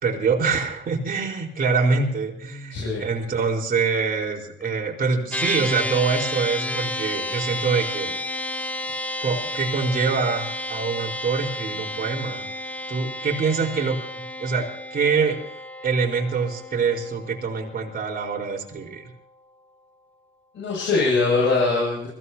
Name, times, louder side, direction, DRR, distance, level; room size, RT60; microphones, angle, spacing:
voice 1, 0.0-8.1 9.2-12.4 12.9-15.4 15.8-19.1, right 5 dB, 45° right, -1 dB, 4.6 m, -25 dB
voice 2, 2.7-3.0 20.5-22.1, left 3 dB, 75° left, -4 dB, 7.6 m, -22 dB
sound 1, 5.3-18.9, left 1 dB, 5° left, 1.4 m, -31 dB
24.0 x 16.5 x 2.9 m, 0.73 s
cardioid pair, 90°, 20 cm